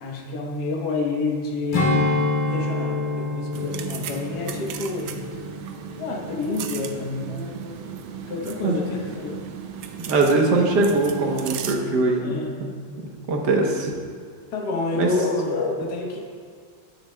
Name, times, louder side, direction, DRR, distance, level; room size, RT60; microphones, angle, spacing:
voice 1, 0.0-5.2 6.0-7.8 8.2-9.4 12.2-12.6 14.5-16.2, left 3 dB, 55° left, 0 dB, 1.6 m, -29 dB
Strum, 1.7-6.4 6.8-7.0, left 2 dB, 35° left, 0.8 m, -27 dB
sound 1, 3.5-11.8, right 8 dB, 75° right, 1.3 m, -36 dB
voice 2, 10.1-12.4 13.0-13.9 14.9-15.1, right 3 dB, 60° right, 1 dB, 1.4 m, -21 dB
16.5 x 6.6 x 2.2 m, 2.1 s
omnidirectional pair, 2.3 m